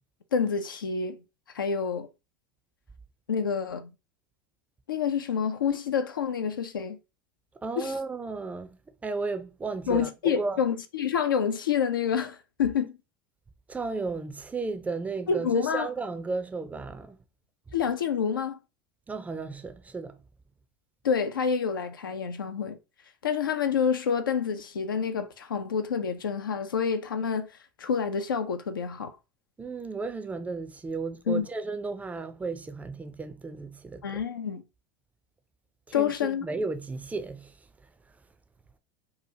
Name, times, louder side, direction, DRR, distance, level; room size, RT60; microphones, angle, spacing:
voice 1, 0.3-1.2 1.5-2.1 3.3-3.9 4.9-7.0 7.8-7.9 9.9-13.0 15.3-15.9 17.7-18.6 21.0-22.8 23.2-27.5 27.8-29.1 31.3-31.5 34.0-34.6 35.9-36.5, left 7 dB, 80° left, 0.4 m, -28 dB
voice 2, 7.6-8.8 9.0-10.6 13.7-17.2 19.1-20.2 29.6-34.2 35.9-37.6, right 3 dB, 15° right, 0.4 m, -34 dB
2.8 x 2.3 x 2.7 m
figure-of-eight pair, 80°, 11 cm